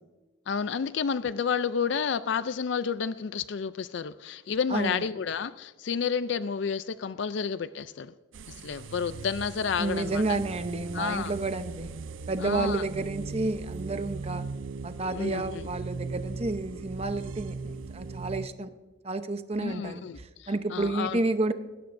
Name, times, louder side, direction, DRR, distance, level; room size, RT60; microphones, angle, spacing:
voice 1, 0.5-8.1 8.5-10.2 10.9-11.3 12.4-12.8 15.1-15.7 19.6-21.2, left 6 dB, 65° left, 14 dB, 0.4 m, -30 dB
voice 2, 4.7-5.0 9.8-11.9 12.3-14.5 14.8-18.7 19.0-21.5, right 2 dB, 30° right, 10 dB, 0.8 m, -30 dB
sound 1, 8.3-18.5, right 4 dB, 75° right, 0.5 m, -39 dB
19.0 x 17.0 x 2.6 m, 1.3 s
head